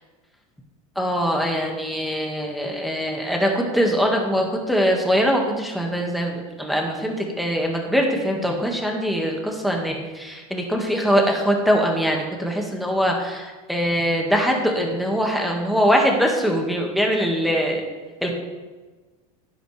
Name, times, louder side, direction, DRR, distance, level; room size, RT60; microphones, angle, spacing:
voice 1, 1.0-17.8 18.2-18.3, equal, ahead, 1 dB, 2.0 m, -22 dB
10.5 x 10.0 x 3.5 m, 1.3 s
supercardioid pair, 115°, 19 cm